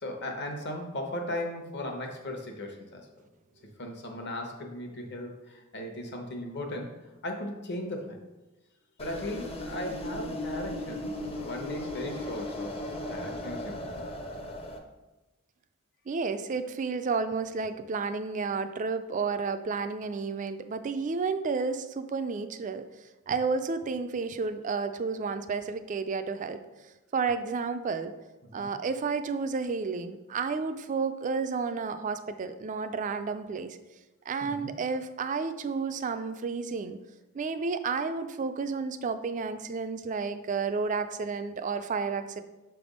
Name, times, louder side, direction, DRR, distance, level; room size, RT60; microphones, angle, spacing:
voice 1, 0.0-3.1 3.8-6.9 7.2-8.2 9.0-12.7 13.1-14.0 28.4-28.7 34.4-34.7, left 1 dB, 50° left, 3 dB, 1.0 m, -37 dB
sound 1, 9.0-14.8, left 1 dB, 25° left, 0.6 m, -37 dB
voice 2, 16.1-22.8 23.3-26.6 27.1-28.1 28.5-33.8 34.3-37.0 37.3-42.4, right 4 dB, 35° right, 10 dB, 0.3 m, -31 dB
6.9 x 3.4 x 5.2 m, 1.1 s
head